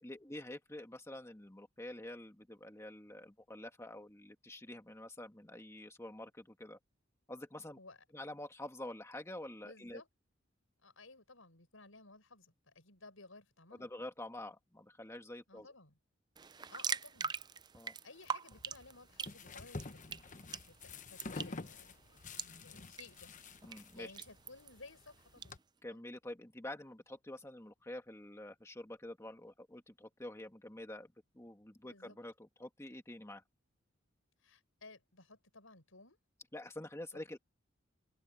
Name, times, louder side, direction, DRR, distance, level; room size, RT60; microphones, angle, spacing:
voice 1, 0.0-6.8 7.3-7.8 8.1-10.0 13.7-15.7 17.7-17.9 23.6-24.1 25.8-33.4 36.5-37.4, left 1 dB, 15° left, 1.6 m, -47 dB
voice 2, 9.6-10.1 10.8-13.9 15.5-16.0 16.7-17.3 18.0-20.1 20.7-23.3 23.9-25.6 25.9-26.1 31.8-32.2 34.4-36.2 37.1-37.2, left 3 dB, 90° left, 6.4 m, -57 dB
sound 1, 16.4-25.5, right 6 dB, 20° right, 0.4 m, -45 dB
sound 2, 18.5-25.6, left 3 dB, 40° left, 1.0 m, -49 dB
open air
head